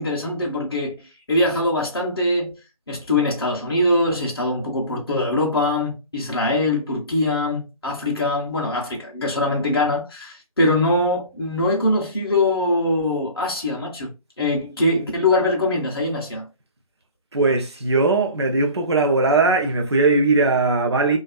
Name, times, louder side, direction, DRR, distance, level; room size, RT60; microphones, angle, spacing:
voice 1, 0.0-2.5 2.9-14.1 14.4-16.5, left 1 dB, 40° left, 0.6 m, -22 dB
voice 2, 17.3-21.2, right 3 dB, 45° right, 0.6 m, -19 dB
2.3 x 2.3 x 2.2 m
figure-of-eight pair, 170°, 18 cm